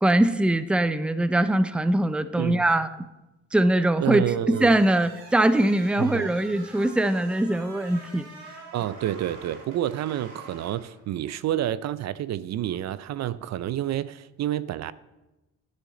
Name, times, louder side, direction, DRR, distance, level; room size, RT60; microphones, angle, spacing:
voice 1, 0.0-2.9 3.5-4.2 4.6-8.3, right 1 dB, 5° right, 0.5 m, -22 dB
voice 2, 4.0-4.8 6.0-6.3 8.7-14.9, right 12 dB, 60° right, 0.5 m, -29 dB
sound 1, 4.4-11.4, right 2 dB, 90° right, 4.3 m, -46 dB
12.0 x 10.5 x 3.8 m
cardioid pair, 90°, 30 cm